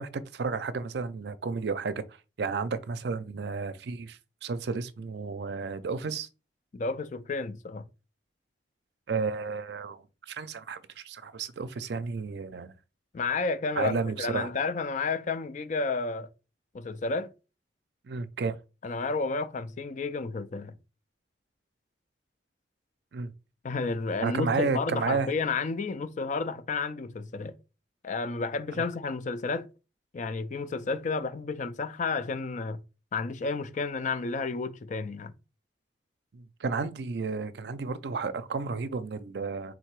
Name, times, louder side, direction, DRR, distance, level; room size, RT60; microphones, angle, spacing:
voice 1, 0.0-2.0 2.4-6.3 9.1-12.7 13.8-14.5 18.1-18.5 23.1-23.3 24.2-25.3 36.3-39.7, right 4 dB, 65° right, 0.5 m, -32 dB
voice 2, 6.7-7.9 13.1-16.3 16.7-17.3 18.8-20.7 23.6-27.5 28.0-29.7 30.1-32.8 33.1-35.3, left 4 dB, 45° left, 0.4 m, -31 dB
3.7 x 2.8 x 4.6 m
head